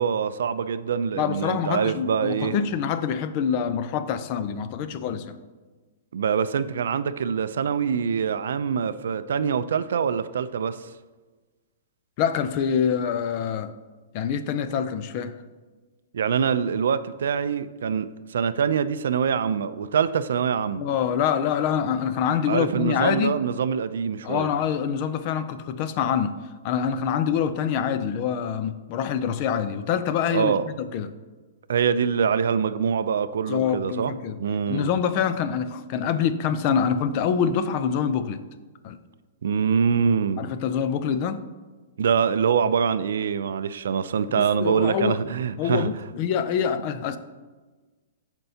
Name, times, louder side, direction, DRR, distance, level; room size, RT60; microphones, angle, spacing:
voice 1, 0.0-2.6 6.1-10.8 16.1-20.9 22.5-24.5 30.3-30.6 31.7-34.1 34.4-34.9 39.4-40.5 42.0-45.9, right 7 dB, 75° right, 13 dB, 0.4 m, -24 dB
voice 2, 1.2-5.4 12.2-13.7 14.1-15.3 20.8-23.4 24.2-26.3 26.6-30.5 30.9-31.1 33.5-34.4 34.7-38.4 38.8-39.0 40.4-41.5 44.4-45.2 45.6-47.2, left 7 dB, 35° left, 11 dB, 0.4 m, -25 dB
13.5 x 4.5 x 2.8 m, 1.3 s
hypercardioid pair, 165°, 0 cm